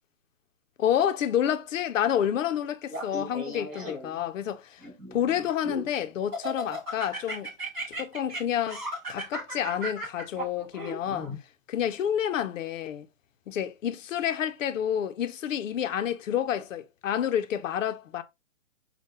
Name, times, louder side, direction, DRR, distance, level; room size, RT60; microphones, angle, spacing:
voice 1, 0.8-4.8 5.1-7.5 7.9-8.8 9.1-11.3 11.7-13.1 13.5-18.2, left 10 dB, 70° left, 0.6 m, -29 dB
Laughter, 2.9-4.2 4.8-5.9 6.3-11.4, equal, 10° right, 0.5 m, -36 dB
4.1 x 2.2 x 3.5 m
hypercardioid pair, 155°, 40 cm